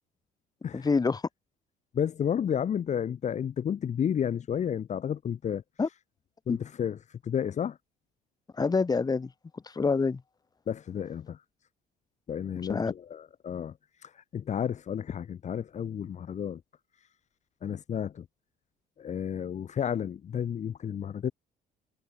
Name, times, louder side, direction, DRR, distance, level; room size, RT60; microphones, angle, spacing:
voice 1, 0.7-1.2 5.8-5.9 6.5-6.6 8.6-10.2 12.7-12.9, left 4 dB, 25° left, 2.1 m, -27 dB
voice 2, 1.9-5.6 6.5-7.0 7.2-7.8 10.7-11.4 12.3-13.7 14.0-16.6 17.6-18.2 19.0-21.3, left 8 dB, 45° left, 1.5 m, -31 dB
cardioid pair, 110°, 17 cm